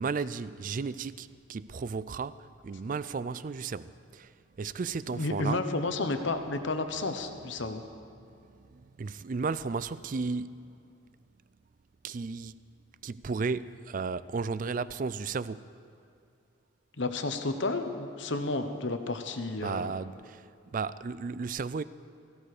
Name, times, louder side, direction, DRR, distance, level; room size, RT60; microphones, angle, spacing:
voice 1, 0.0-5.6 8.3-10.7 12.0-12.6 13.0-15.7 19.6-21.8, right 4 dB, 40° right, 0.3 m, -34 dB
voice 2, 5.1-7.8 17.0-19.9, left 2 dB, 60° left, 1.0 m, -31 dB
17.5 x 15.0 x 5.0 m
head